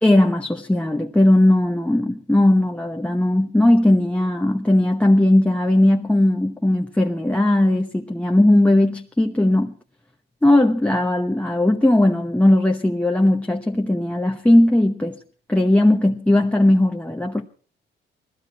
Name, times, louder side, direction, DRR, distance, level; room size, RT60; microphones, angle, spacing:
voice 1, 0.0-9.7 10.4-15.2 15.5-17.5, left 1 dB, 5° left, 1.0 m, -18 dB
19.5 x 15.0 x 4.6 m
cardioid pair, 90°, 20 cm